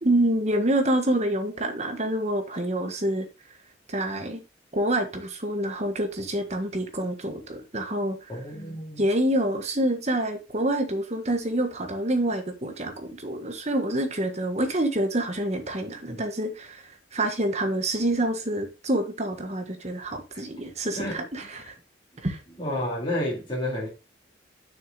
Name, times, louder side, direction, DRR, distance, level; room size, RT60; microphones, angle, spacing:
voice 1, 0.0-3.3 3.9-4.4 4.7-8.2 9.0-16.8 17.1-21.7 22.2-22.4, right 1 dB, 35° right, 1.5 m, -27 dB
voice 2, 8.3-9.1 16.1-16.2 21.0-21.2 22.6-23.9, left 1 dB, 25° left, 2.6 m, -30 dB
6.7 x 6.4 x 3.9 m
head